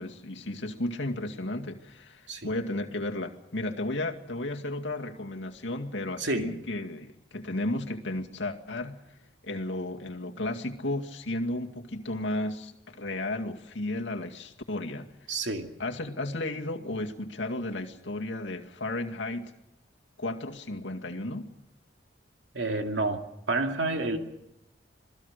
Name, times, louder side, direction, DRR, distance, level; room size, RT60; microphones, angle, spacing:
voice 1, 0.0-9.0 9.4-15.1 15.8-19.5 20.2-21.5, left 1 dB, 85° left, 3 dB, 2.2 m, -33 dB
voice 2, 6.2-6.5 15.3-15.7 22.5-23.2 23.5-24.2, right 2 dB, 80° right, 4 dB, 2.3 m, -29 dB
27.0 x 19.0 x 6.7 m, 0.86 s
head